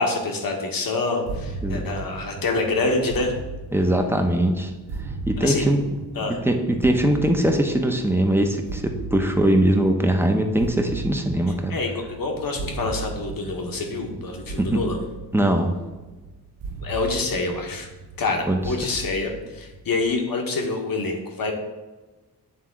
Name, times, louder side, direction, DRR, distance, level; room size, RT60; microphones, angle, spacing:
voice 1, 0.0-3.3 5.4-5.7 6.1-6.4 11.7-15.0 16.8-17.9 18.2-21.5, left 3 dB, 65° left, 2 dB, 1.3 m, -26 dB
sound 1, 1.3-20.2, right 3 dB, 70° right, 0.7 m, -37 dB
voice 2, 3.7-4.7 5.3-5.8 6.4-11.7 14.6-14.8 15.3-15.7 18.5-18.6, right 1 dB, 5° right, 4 dB, 0.8 m, -21 dB
8.9 x 3.6 x 3.7 m, 1.2 s
cardioid pair, 85°, 37 cm